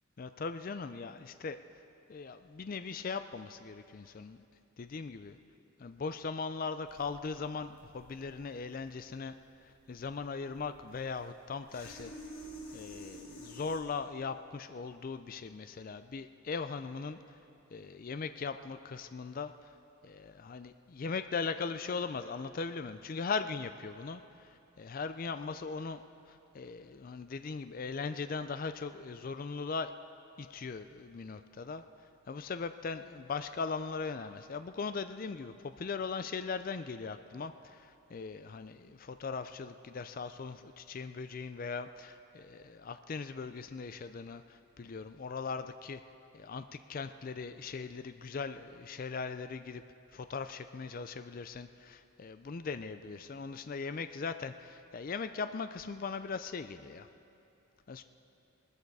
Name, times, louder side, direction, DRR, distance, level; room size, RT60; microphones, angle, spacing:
voice 1, 0.2-1.6 2.1-4.4 4.8-5.4 5.8-9.3 9.9-12.1 12.7-17.2 17.7-19.5 20.0-24.2 24.8-29.9 30.4-31.8 32.3-46.0 46.3-49.8 50.1-57.1 57.9-58.0, left 4 dB, 40° left, 10 dB, 0.4 m, -39 dB
sound 1, 6.9-13.8, equal, 80° left, 3.6 m, -50 dB
20.0 x 13.5 x 4.8 m, 2.7 s
head